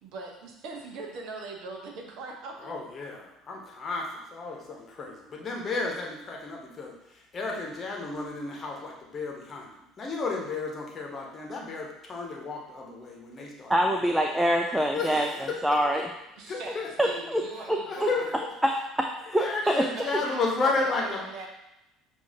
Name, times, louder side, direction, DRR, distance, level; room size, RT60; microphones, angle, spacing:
voice 1, 0.0-2.7 16.4-18.3 19.6-21.5, right 3 dB, 55° right, 1 dB, 0.8 m, -40 dB
voice 2, 2.6-6.9 7.3-14.0 14.9-15.9 16.5-16.9 17.9-18.3 19.4-21.2, left 3 dB, 35° left, 0 dB, 1.0 m, -33 dB
voice 3, 13.7-16.1 17.0-17.4 17.7-18.1 18.6-18.7 19.0-19.8, equal, 5° right, 3 dB, 0.4 m, -25 dB
6.9 x 2.7 x 2.8 m, 0.89 s
figure-of-eight pair, 60°, 0 cm